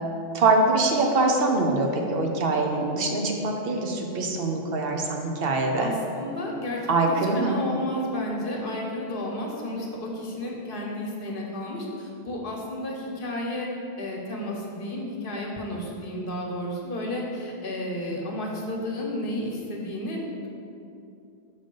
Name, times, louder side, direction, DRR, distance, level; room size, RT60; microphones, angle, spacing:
voice 1, 0.3-5.9 6.9-7.6, right 3 dB, 65° right, 2 dB, 0.9 m, -23 dB
voice 2, 5.8-13.7 14.0-20.2, left 1 dB, 60° left, -1 dB, 1.0 m, -32 dB
5.5 x 3.8 x 5.3 m, 2.6 s
omnidirectional pair, 1.0 m